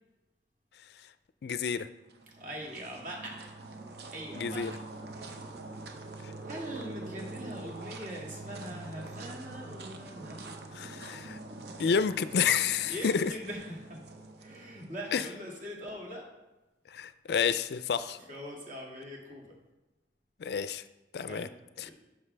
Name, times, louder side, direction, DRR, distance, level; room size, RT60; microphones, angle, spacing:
voice 1, 1.4-1.9 4.3-4.7 6.2-6.3 10.7-11.4 11.8-13.3 15.1-15.2 16.9-18.2 20.4-20.8 21.1-21.5, left 6 dB, 65° left, 13 dB, 0.4 m, -29 dB
sound 1, 2.0-15.3, right 2 dB, 65° right, 0.7 m, -45 dB
voice 2, 2.4-3.5 4.1-4.8 5.1-5.4 6.1-10.5 12.9-14.0 14.4-16.3 18.2-19.6 21.2-21.5 21.8-21.9, equal, 45° right, -2 dB, 2.1 m, -42 dB
11.0 x 6.1 x 3.4 m, 1.1 s
head